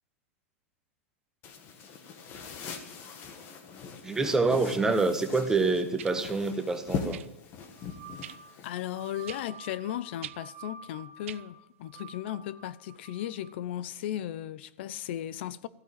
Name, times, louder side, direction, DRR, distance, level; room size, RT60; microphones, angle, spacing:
sound 1, 1.4-9.5, left 6 dB, 30° left, 1.6 m, -41 dB
voice 1, 4.0-7.2, right 3 dB, 5° right, 1.1 m, -26 dB
sound 2, 6.0-6.2 7.1-7.3 8.2-8.4 9.3-9.4 10.2-10.4 11.2-11.4 12.4-12.5, right 13 dB, 65° right, 0.5 m, -42 dB
sound 3, 7.6-13.6, right 4 dB, 90° right, 2.0 m, -49 dB
voice 2, 8.6-15.7, left 12 dB, 50° left, 0.7 m, -36 dB
15.0 x 8.8 x 8.7 m
supercardioid pair, 155°, 8 cm